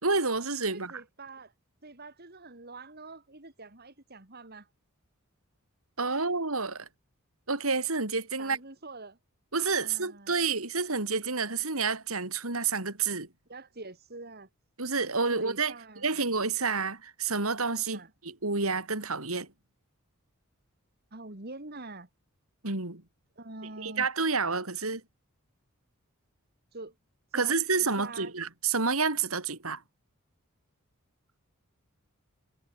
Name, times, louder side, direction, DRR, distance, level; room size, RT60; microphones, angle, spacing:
voice 1, 0.0-0.9 6.0-6.9 7.5-8.6 9.5-13.3 14.8-15.7 16.0-19.5 22.6-23.0 23.8-25.0 27.3-29.8, right 4 dB, 80° right, 4.1 m, -29 dB
voice 2, 0.7-1.5 1.8-4.7 6.1-6.3 8.4-9.2 9.8-10.3 13.5-14.5 15.3-16.2 17.9-18.1 21.1-22.1 23.3-24.1 26.7-27.0 27.3-28.3, right 2 dB, 45° right, 3.3 m, -45 dB
head